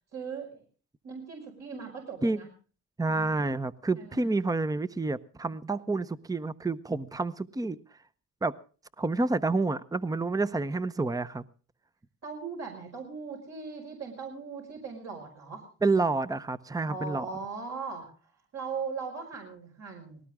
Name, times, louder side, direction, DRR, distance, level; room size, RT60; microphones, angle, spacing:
voice 1, 0.1-0.6 1.0-2.5 3.0-3.3 3.9-4.2 12.2-15.7 16.8-20.2, right 5 dB, 60° right, 5.5 m, -39 dB
voice 2, 3.0-7.8 8.4-8.6 9.0-11.4 15.8-17.3, right 3 dB, 10° right, 0.8 m, -29 dB
19.5 x 18.0 x 3.6 m
cardioid pair, 90°, 30 cm